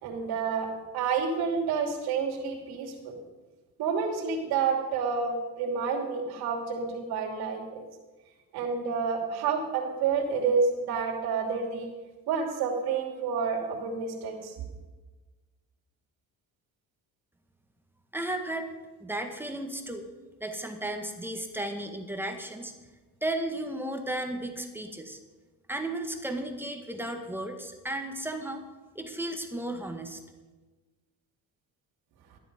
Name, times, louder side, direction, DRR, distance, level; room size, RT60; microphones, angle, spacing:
voice 1, 0.0-3.2 3.8-7.8 8.5-11.9 12.3-14.5, right 5 dB, 80° right, 1 dB, 2.8 m, -29 dB
voice 2, 18.1-18.7 19.0-20.0 20.4-22.7 23.2-25.2 25.7-28.6 29.0-30.2, right 1 dB, 5° right, 4 dB, 1.8 m, -34 dB
13.5 x 10.5 x 5.3 m, 1.2 s
cardioid pair, 110°, 37 cm